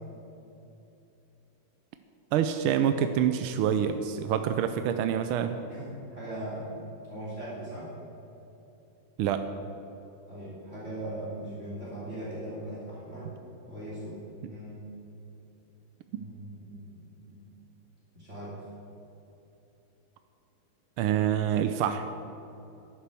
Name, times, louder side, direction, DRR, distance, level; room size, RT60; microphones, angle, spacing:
voice 1, 2.3-5.6 9.2-9.4 16.1-16.2 21.0-22.1, right 9 dB, 85° right, 8 dB, 1.5 m, -26 dB
voice 2, 5.7-6.7 7.0-7.9 10.3-13.3 13.6-14.8 16.1-17.4 18.1-18.5, right 1 dB, 35° right, -7 dB, 3.2 m, -40 dB
11.5 x 9.5 x 6.9 m, 2.9 s
omnidirectional pair, 2.3 m